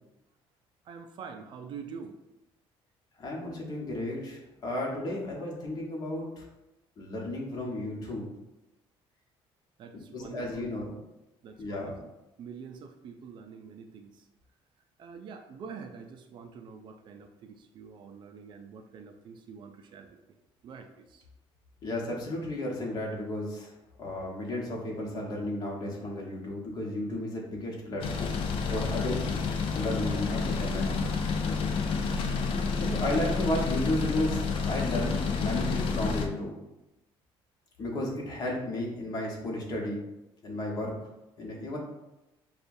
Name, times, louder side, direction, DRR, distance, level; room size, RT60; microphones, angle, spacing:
voice 1, 0.9-2.2 9.8-10.7 11.4-12.1 12.4-14.3 15.0-20.4 20.6-21.2, right 6 dB, 50° right, 6 dB, 0.4 m, -46 dB
voice 2, 3.2-6.4 7.0-8.3 10.1-11.0 11.6-12.0 21.8-23.7 24.0-28.4 28.7-29.4 29.7-31.0 31.4-32.4 32.8-34.4 34.7-36.5 37.8-40.0 40.4-41.0 41.4-41.8, left 1 dB, 40° left, -2 dB, 1.2 m, -33 dB
sound 1, 28.0-36.3, left 4 dB, 60° left, 0.5 m, -29 dB
6.6 x 2.4 x 2.6 m, 0.95 s
cardioid pair, 130°, 10 cm